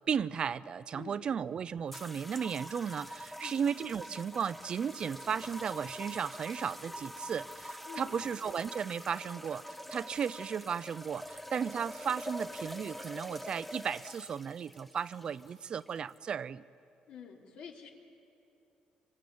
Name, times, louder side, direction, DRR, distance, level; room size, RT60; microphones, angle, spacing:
voice 1, 0.1-16.6, right 7 dB, 40° right, 16 dB, 0.6 m, -35 dB
voice 2, 0.9-1.4 3.4-3.6 7.9-8.2 17.1-17.9, left 7 dB, 70° left, 0 dB, 3.7 m, -48 dB
sound 1, 1.9-16.2, equal, 5° left, 0.8 m, -45 dB
25.5 x 24.0 x 8.7 m, 2.7 s
cardioid pair, 130°, 2 cm